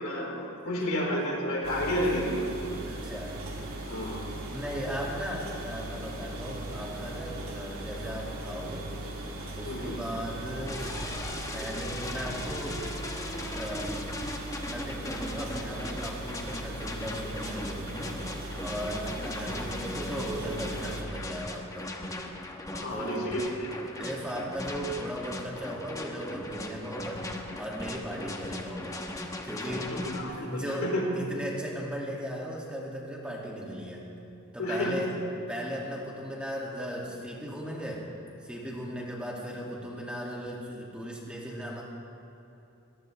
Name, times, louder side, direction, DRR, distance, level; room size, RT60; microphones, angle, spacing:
voice 1, 0.0-2.5 3.9-4.2 9.7-9.9 22.7-23.8 29.9-31.0 34.6-35.0, left 1 dB, 90° left, -3 dB, 4.2 m, -31 dB
sound 1, 1.6-21.0, right 2 dB, 85° right, 2.7 m, -39 dB
voice 2, 2.9-3.4 4.0-4.1 4.5-8.9 9.6-10.9 11.5-12.9 13.4-14.0 14.6-18.2 18.6-21.9 22.9-23.3 24.0-27.3 27.5-29.1 29.4-34.0 34.5-35.1 35.5-38.1 38.4-41.8, equal, 5° right, -3 dB, 2.2 m, -37 dB
sound 2, 10.7-30.2, left 1 dB, 15° left, 1.1 m, -38 dB
22.5 x 19.0 x 3.3 m, 2.9 s
head